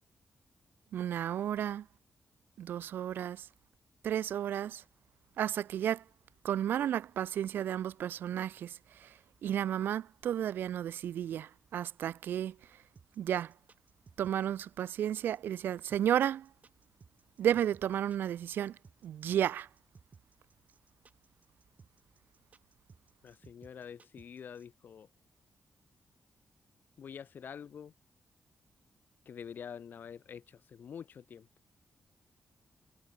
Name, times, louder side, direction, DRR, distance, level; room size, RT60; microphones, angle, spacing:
voice 1, 0.9-1.8 2.6-3.4 4.0-4.8 5.4-6.0 6.4-8.7 9.4-12.5 13.2-13.5 14.2-16.5 17.4-18.7 19.0-19.7, right 10 dB, 85° right, 0.3 m, -32 dB
sound 1, 12.9-24.6, right 5 dB, 50° right, 3.5 m, -59 dB
voice 2, 23.2-25.1 27.0-27.9 29.3-31.5, left 7 dB, 70° left, 1.3 m, -46 dB
cardioid pair, 85°, 3 cm